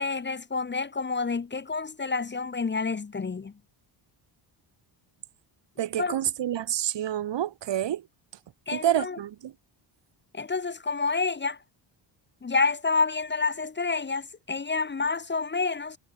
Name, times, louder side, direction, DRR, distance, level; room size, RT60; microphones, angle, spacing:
voice 1, 0.0-3.5 6.0-6.2 8.7-9.2 10.3-11.6 12.4-16.0, left 4 dB, 20° left, 1.1 m, -28 dB
voice 2, 5.8-8.0 8.7-9.5, right 11 dB, 60° right, 2.0 m, -28 dB
cardioid pair, 150°, 49 cm